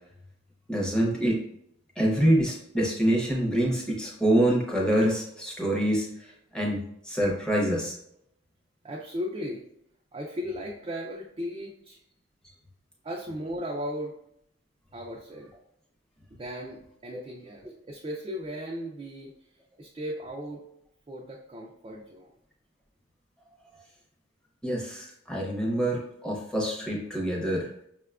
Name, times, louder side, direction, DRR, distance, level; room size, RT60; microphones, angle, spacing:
voice 1, 0.7-1.4 2.0-6.1 6.5-7.9 17.1-17.2 24.6-27.7, right 1 dB, 5° left, -3 dB, 0.7 m, -26 dB
voice 2, 8.8-9.6 10.1-12.0 13.0-14.1 14.9-15.5 16.3-19.3 19.8-20.7 21.1-22.3, equal, 25° right, -2 dB, 0.3 m, -36 dB
5.5 x 2.2 x 2.3 m, 0.74 s
head